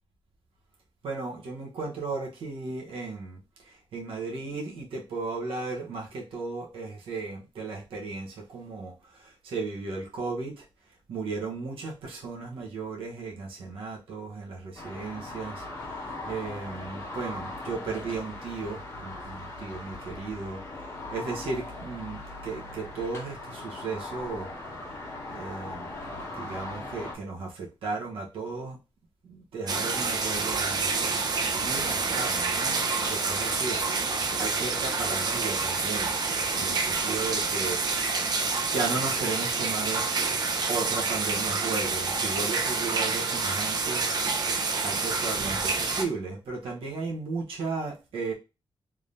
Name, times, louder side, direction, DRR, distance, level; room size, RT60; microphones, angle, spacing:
voice 1, 1.0-10.6 11.1-20.8 21.1-24.5 25.3-26.0 26.4-28.8 29.2-30.8 31.6-33.8 34.4-36.1 36.6-37.8 38.7-40.0 40.7-44.0 44.8-48.3, right 4 dB, 80° right, -2 dB, 1.0 m, -35 dB
sound 1, 14.8-27.1, left 2 dB, 30° left, 1.2 m, -39 dB
sound 2, 29.7-46.0, right 4 dB, 50° right, 0.6 m, -28 dB
3.5 x 2.7 x 3.3 m, 0.29 s
wide cardioid pair, 160°, 9 cm